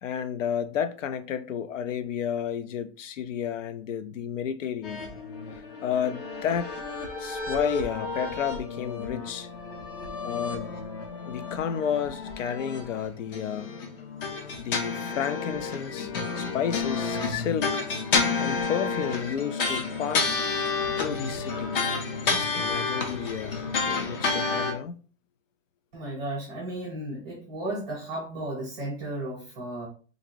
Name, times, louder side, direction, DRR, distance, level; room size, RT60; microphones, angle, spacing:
voice 1, 0.0-5.1 5.8-6.7 7.2-9.5 10.2-10.8 11.3-13.8 14.6-17.7 18.4-20.4 21.0-21.8 22.2-25.0, left 8 dB, 85° left, 0.6 m, -31 dB
sound 1, 4.8-24.7, left 4 dB, 50° left, 0.8 m, -30 dB
voice 2, 25.9-29.9, right 1 dB, 5° right, 0.3 m, -34 dB
3.8 x 2.6 x 3.0 m
hypercardioid pair, 165°, 37 cm